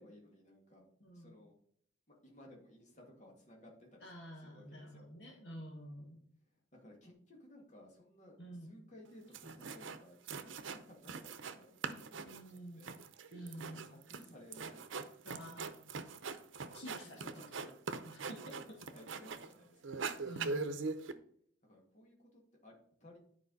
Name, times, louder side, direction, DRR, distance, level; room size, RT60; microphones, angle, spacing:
voice 1, 0.0-0.9 1.1-1.6 2.2-4.1 4.4-5.1 6.7-13.0 13.5-15.1 15.6-15.7 17.2-17.8 18.3-20.1 21.6-23.2, left 1 dB, 40° left, -1 dB, 2.2 m, -58 dB
voice 2, 1.0-1.3 4.0-6.2 8.4-8.7 12.3-12.8 13.3-13.9 15.2-15.8 16.7-17.2 18.0-18.4 20.2-20.8, equal, 60° left, -1 dB, 1.7 m, -49 dB
sound 1, 9.1-9.2 9.3-10.0 10.3-11.6 11.8-19.5 19.8-21.1, right 4 dB, 85° right, 0.7 m, -42 dB
10.0 x 4.8 x 4.0 m, 0.63 s
head